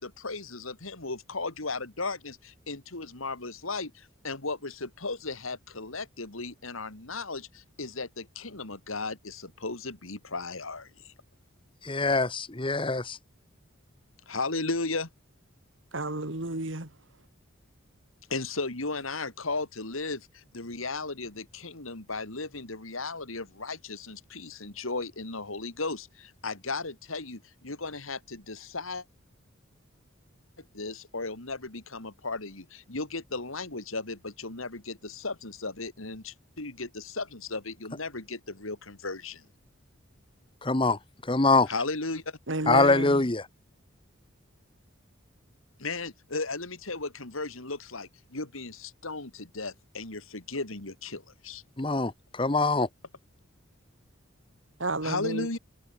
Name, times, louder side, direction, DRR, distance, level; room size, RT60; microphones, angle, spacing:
voice 1, 0.0-11.1 14.3-15.1 18.3-29.0 30.7-39.4 41.7-42.4 45.8-51.6 51.9-52.0 55.0-55.6, left 3 dB, 85° left, 3.3 m, -35 dB
voice 2, 11.8-13.2 40.6-41.0 41.3-41.7 42.7-43.4 51.8-52.9, left 3 dB, 25° left, 1.0 m, -24 dB
voice 3, 15.9-16.9 42.5-43.3 54.8-55.6, right 2 dB, 65° right, 2.4 m, -32 dB
head